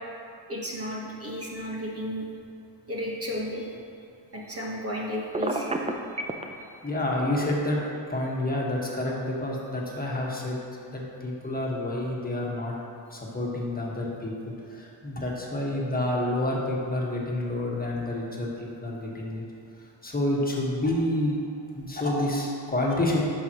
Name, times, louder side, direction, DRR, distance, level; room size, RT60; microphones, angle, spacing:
voice 1, 0.5-2.2 2.9-3.6 4.3-5.8, equal, 35° right, -4 dB, 1.3 m, -33 dB
Telephone, 5.3-6.4, right 2 dB, 15° right, 0.5 m, -28 dB
voice 2, 6.8-7.8 8.1-10.6 10.9-12.8 13.1-14.3 14.7-19.4 20.0-21.4 21.7-23.2, left 1 dB, 20° left, -3 dB, 1.5 m, -28 dB
11.0 x 5.5 x 3.0 m, 2.5 s
cardioid pair, 85°, 43 cm